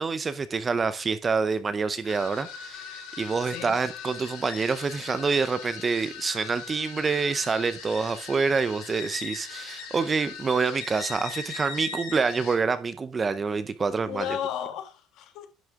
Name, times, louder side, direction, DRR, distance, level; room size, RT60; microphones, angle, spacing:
voice 1, 0.0-14.4, right 4 dB, 20° right, 0.5 m, -27 dB
sound 1, 2.0-12.6, left 6 dB, 85° left, 3.3 m, -40 dB
voice 2, 3.5-3.8 14.1-15.5, left 10 dB, 55° left, 1.5 m, -34 dB
10.5 x 6.2 x 3.6 m
cardioid pair, 175°, 0 cm